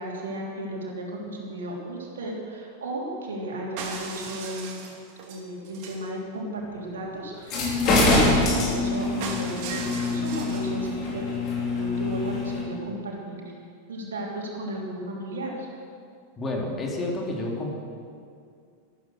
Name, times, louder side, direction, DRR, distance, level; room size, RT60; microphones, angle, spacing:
voice 1, 0.0-4.8 5.3-13.4 13.9-15.7, right 1 dB, 65° right, -2 dB, 3.3 m, -34 dB
sound 1, 3.8-6.1 9.2-10.7, right 5 dB, 45° right, 2.5 m, -37 dB
sound 2, 7.4-12.6, left 2 dB, 35° left, 4.4 m, -24 dB
voice 2, 16.4-17.7, left 2 dB, 20° left, -1 dB, 2.9 m, -29 dB
14.0 x 13.0 x 6.4 m, 2.3 s
figure-of-eight pair, 90°, 0 cm